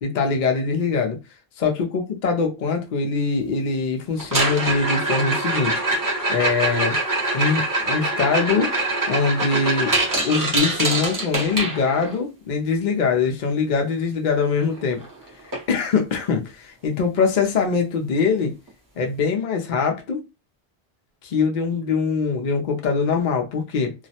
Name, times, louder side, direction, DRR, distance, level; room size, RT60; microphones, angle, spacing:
voice 1, 0.0-1.2 1.6-5.8 6.3-7.0 7.3-8.7 9.1-10.0 10.2-15.0 15.7-18.5 19.0-20.2 21.2-23.9, left 5 dB, 55° left, 0.6 m, -23 dB
sound 1, 4.2-12.2 14.4-14.5 14.8-15.1 15.5-15.6 16.2-16.3 18.2-18.3, right 2 dB, 25° right, 0.5 m, -24 dB
2.3 x 2.0 x 2.7 m
omnidirectional pair, 1.1 m